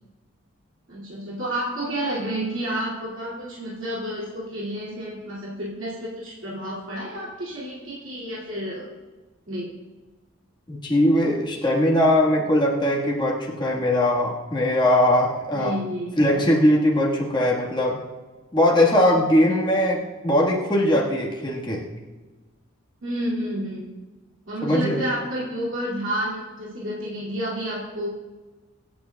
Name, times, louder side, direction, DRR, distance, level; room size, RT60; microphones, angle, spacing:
voice 1, 0.9-8.9 9.5-9.7 15.5-16.2 19.4-19.9 23.0-23.9 24.5-28.1, equal, 70° right, -7 dB, 2.3 m, -30 dB
voice 2, 10.7-15.8 16.2-18.0 18.5-21.8 24.6-25.0, left 1 dB, 20° left, -4 dB, 1.5 m, -20 dB
24.5 x 9.3 x 2.3 m, 1.2 s
head